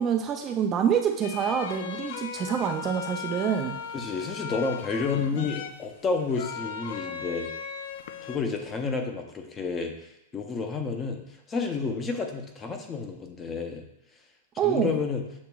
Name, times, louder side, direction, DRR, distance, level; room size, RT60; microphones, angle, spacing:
voice 1, 0.0-3.8 14.6-15.0, right 8 dB, 25° right, 5 dB, 0.3 m, -26 dB
sound 1, 1.2-8.4, left 7 dB, 65° left, 0.3 m, -37 dB
voice 2, 3.9-7.5 8.2-11.2 11.5-13.8 14.6-15.2, left 4 dB, 20° left, 4 dB, 0.6 m, -30 dB
7.1 x 2.9 x 2.3 m, 0.86 s
hypercardioid pair, 145°, 0 cm